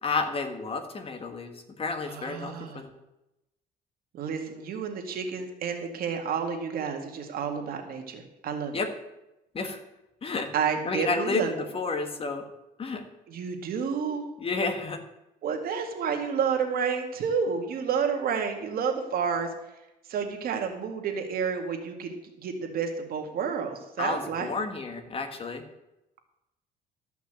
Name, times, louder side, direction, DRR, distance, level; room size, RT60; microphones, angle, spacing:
voice 1, 0.0-2.9 8.7-8.9 9.5-9.8 10.2-10.5 10.8-12.4 12.8-13.0 14.4-15.0 24.0-25.6, left 4 dB, 35° left, 7 dB, 1.7 m, -31 dB
voice 2, 2.1-2.8 4.1-8.8 10.5-11.5 13.3-14.2 15.4-19.5 20.1-22.1 22.4-24.5, right 6 dB, 60° right, 4 dB, 2.1 m, -30 dB
13.0 x 5.9 x 7.6 m, 0.91 s
cardioid pair, 110°, 17 cm